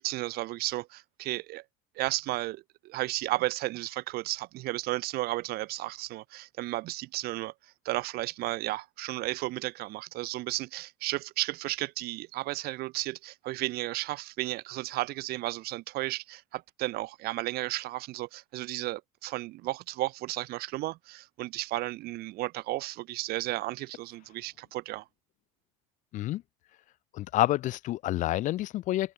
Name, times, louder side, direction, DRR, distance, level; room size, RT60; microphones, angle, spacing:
voice 1, 0.0-1.6 2.0-7.5 7.8-25.0, right 18 dB, 60° right, 2.9 m, -33 dB
voice 2, 27.1-29.1, left 15 dB, 45° left, 0.4 m, -28 dB
supercardioid pair, 90°, 18 cm